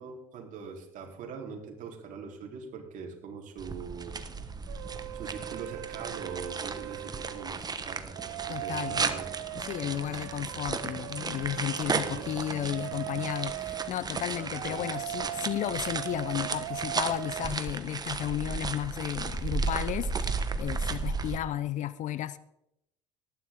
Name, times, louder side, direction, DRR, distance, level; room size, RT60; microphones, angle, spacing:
voice 1, 0.0-4.3 5.1-8.2 8.5-9.3 11.9-12.3 14.4-14.8, right 6 dB, 50° right, 2 dB, 4.0 m, -42 dB
sound 1, 3.6-21.4, right 4 dB, 25° right, 1.6 m, -35 dB
sound 2, 4.7-7.5 8.1-13.9 14.5-17.5, right 15 dB, 70° right, 0.6 m, -40 dB
voice 2, 8.5-9.1 9.5-22.4, left 12 dB, 45° left, 16 dB, 0.8 m, -33 dB
19.5 x 14.0 x 3.8 m, 0.83 s
hypercardioid pair, 70°, 17 cm